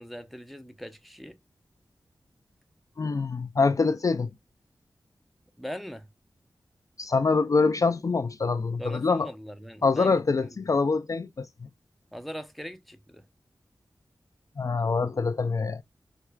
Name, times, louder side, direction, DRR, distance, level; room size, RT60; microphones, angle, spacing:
voice 1, 0.0-1.4 5.6-6.1 8.8-10.5 12.1-13.2, equal, ahead, 0.6 m, -41 dB
voice 2, 3.0-4.3 7.0-9.3 9.8-11.5 14.6-15.8, left 4 dB, 45° left, 0.3 m, -25 dB
4.3 x 2.3 x 2.2 m
cardioid pair, 45°, 8 cm